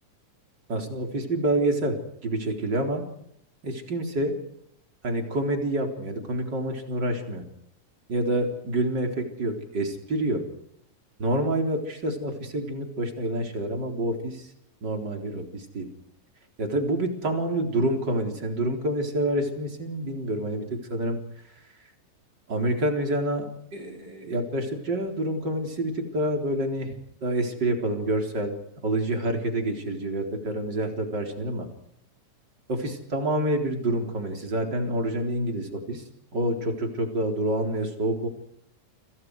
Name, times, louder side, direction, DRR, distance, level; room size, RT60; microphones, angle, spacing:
voice 1, 0.7-2.0 2.2-3.0 3.6-4.4 5.0-7.4 8.1-10.4 11.2-14.5 14.8-15.9 16.6-21.2 22.5-23.5 23.7-28.6 28.8-31.7 32.7-36.0 36.3-38.3, right 1 dB, 30° right, 3 dB, 4.4 m, -27 dB
29.5 x 27.0 x 4.9 m, 0.75 s
omnidirectional pair, 3.9 m